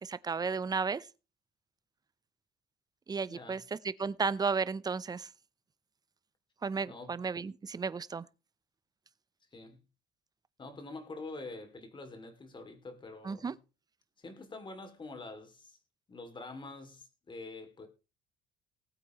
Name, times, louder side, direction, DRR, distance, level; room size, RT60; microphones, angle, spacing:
voice 1, 0.0-1.0 3.1-3.6 4.0-5.3 6.6-8.2 13.2-13.5, right 5 dB, 25° right, 0.6 m, -33 dB
voice 2, 3.3-3.6 6.8-7.2 9.5-9.8 10.6-13.5 14.2-15.8 16.1-17.9, left 3 dB, 30° left, 2.7 m, -46 dB
19.5 x 8.3 x 3.1 m
cardioid pair, 110°, 17 cm